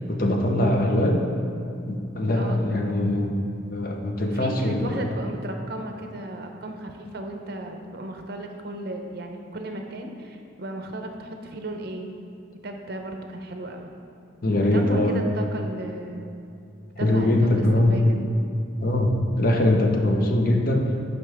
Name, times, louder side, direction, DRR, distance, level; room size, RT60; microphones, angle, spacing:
voice 1, 0.1-1.2 1.9-3.4 3.7-5.1 14.4-15.2 17.0-18.2 18.8-20.8, left 1 dB, 45° left, 2 dB, 0.7 m, -22 dB
voice 2, 4.2-12.1 12.6-13.9 14.6-16.3 17.0-18.0, right 1 dB, 50° right, 4 dB, 0.7 m, -35 dB
9.7 x 5.2 x 3.5 m, 2.6 s
head